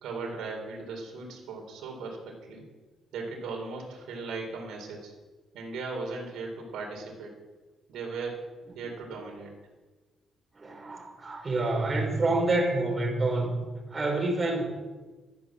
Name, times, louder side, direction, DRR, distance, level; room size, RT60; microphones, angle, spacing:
voice 1, 0.0-2.7 3.1-5.1 5.5-7.3 7.9-8.4 8.7-9.5, right 4 dB, 85° right, 1 dB, 4.2 m, -37 dB
voice 2, 10.6-13.6 13.9-14.6, right 2 dB, 30° right, 0 dB, 4.9 m, -27 dB
13.0 x 11.5 x 7.5 m, 1.3 s
cardioid pair, 90°, 0 cm